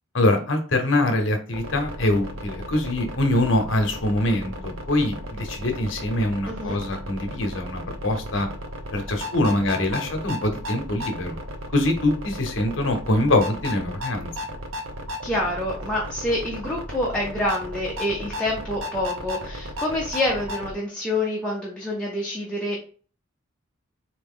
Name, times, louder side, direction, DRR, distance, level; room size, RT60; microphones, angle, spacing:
voice 1, 0.1-8.5 8.9-11.4 11.7-14.3, left 1 dB, 70° left, 5 dB, 0.9 m, -24 dB
sound 1, 1.5-20.8, equal, 85° right, 0.7 m, -35 dB
voice 2, 6.5-6.8 15.2-22.8, left 1 dB, 5° left, -4 dB, 0.8 m, -27 dB
4.0 x 2.9 x 3.6 m, 0.40 s
head